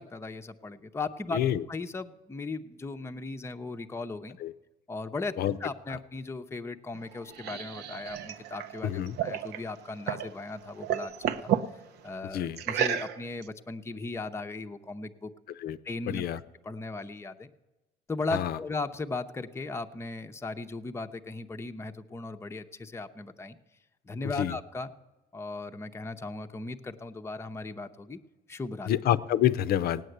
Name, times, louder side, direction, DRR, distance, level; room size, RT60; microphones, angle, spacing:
voice 1, 0.0-1.4 1.7-4.4 4.9-11.5 12.0-15.3 15.8-17.5 18.1-23.6 24.0-24.9 25.3-28.2 28.5-28.9, left 3 dB, 15° left, 6 dB, 0.7 m, -37 dB
voice 2, 1.3-1.6 4.4-4.5 5.4-5.6 8.8-9.2 12.3-12.6 15.6-15.8 16.1-16.4 18.3-18.6 24.4-24.6 28.9-30.0, left 11 dB, 65° left, 14 dB, 0.6 m, -27 dB
sound 1, 6.9-10.3 10.6-11.7 12.6-13.4, right 9 dB, 75° right, 0.8 m, -32 dB
17.0 x 9.2 x 7.9 m, 1.1 s
cardioid pair, 110°, 17 cm